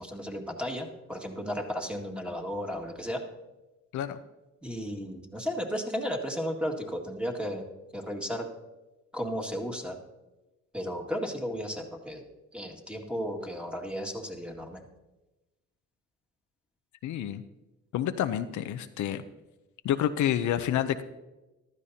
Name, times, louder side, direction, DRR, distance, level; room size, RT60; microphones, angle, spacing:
voice 1, 0.0-3.2 4.6-7.7 7.9-8.4 9.1-10.0 10.7-12.2 12.5-14.8, equal, 5° right, 1 dB, 2.0 m, -34 dB
voice 2, 17.0-17.4 17.9-19.2 19.8-21.0, left 10 dB, 75° left, 10 dB, 0.6 m, -28 dB
15.0 x 12.5 x 2.8 m, 1.1 s
cardioid pair, 90°, 30 cm